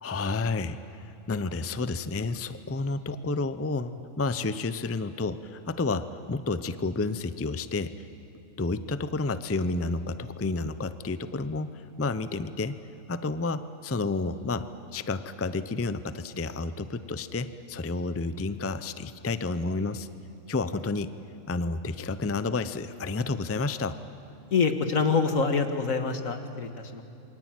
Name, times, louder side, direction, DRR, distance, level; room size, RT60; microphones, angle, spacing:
voice 1, 0.0-8.0 8.6-12.8 13.1-20.1 20.5-21.1 21.5-24.0, left 3 dB, 20° left, 13 dB, 0.4 m, -30 dB
voice 2, 24.5-27.0, left 5 dB, 80° left, 7 dB, 2.0 m, -26 dB
27.5 x 23.0 x 9.1 m, 2.7 s
omnidirectional pair, 1.4 m